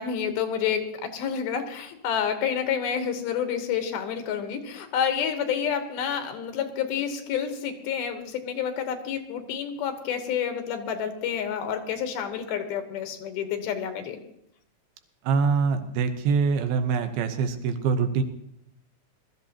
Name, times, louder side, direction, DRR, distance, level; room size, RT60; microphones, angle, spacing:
voice 1, 0.0-14.2, left 8 dB, 90° left, 7 dB, 3.1 m, -29 dB
voice 2, 15.2-18.2, right 5 dB, 90° right, 7 dB, 2.9 m, -24 dB
21.0 x 13.0 x 2.9 m, 0.76 s
omnidirectional pair, 4.2 m